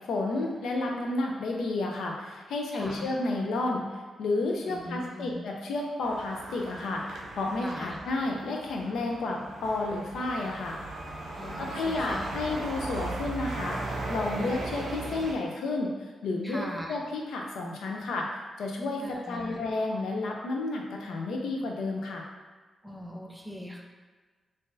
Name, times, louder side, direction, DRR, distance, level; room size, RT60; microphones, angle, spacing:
voice 1, 0.1-3.9 4.2-10.8 11.6-22.3, left 2 dB, 85° left, 0 dB, 0.5 m, -31 dB
voice 2, 2.7-3.1 4.6-5.4 7.6-8.0 11.4-12.3 16.4-17.0 19.0-19.6 22.8-23.8, equal, ahead, 0 dB, 0.4 m, -40 dB
sound 1, 6.0-15.3, right 2 dB, 80° right, 0.5 m, -38 dB
2.6 x 2.5 x 3.8 m, 1.4 s
wide cardioid pair, 145°, 0 cm